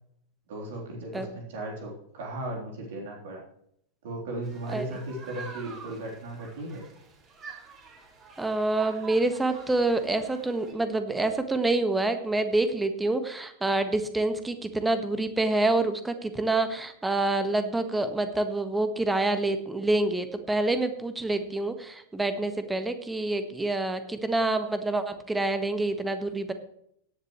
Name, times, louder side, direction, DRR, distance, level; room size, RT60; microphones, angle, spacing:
voice 1, 0.5-3.4 4.0-6.8, right 1 dB, 55° right, -1 dB, 3.8 m, -36 dB
sound 1, 4.4-10.7, right 5 dB, 30° right, 4.6 m, -47 dB
voice 2, 8.4-26.5, right 2 dB, 10° right, 9 dB, 1.5 m, -27 dB
17.5 x 11.0 x 3.2 m, 0.71 s
figure-of-eight pair, 90°, 0 cm